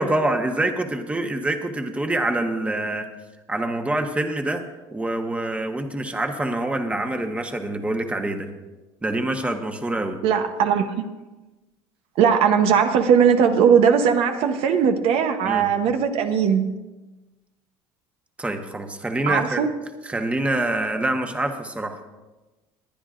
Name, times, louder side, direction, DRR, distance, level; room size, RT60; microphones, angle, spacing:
voice 1, 0.0-3.1 3.5-4.6 4.9-8.5 9.0-10.2 15.4-15.7 18.4-19.7 20.0-22.0, right 1 dB, 10° right, 5 dB, 1.2 m, -25 dB
voice 2, 10.2-11.1 12.2-16.7 19.3-19.7, right 7 dB, 65° right, 7 dB, 0.9 m, -19 dB
20.5 x 10.0 x 2.5 m, 1.1 s
supercardioid pair, 105°, 11 cm